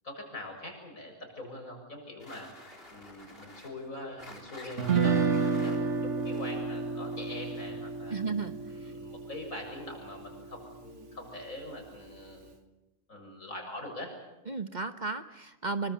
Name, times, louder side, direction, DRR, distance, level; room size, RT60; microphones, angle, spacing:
voice 1, 0.0-5.7 6.0-8.2 8.7-12.6 13.1-14.1, left 1 dB, 80° left, 2 dB, 7.3 m, -43 dB
sound 1, 2.2-7.9, left 1 dB, 45° left, 4.3 m, -50 dB
Guitar, 4.8-10.9, right 4 dB, 60° right, 1.8 m, -31 dB
voice 2, 8.1-8.5 8.8-8.9 14.5-15.9, right 4 dB, 35° right, 9 dB, 1.2 m, -34 dB
26.0 x 24.5 x 7.2 m, 1.0 s
omnidirectional pair, 1.4 m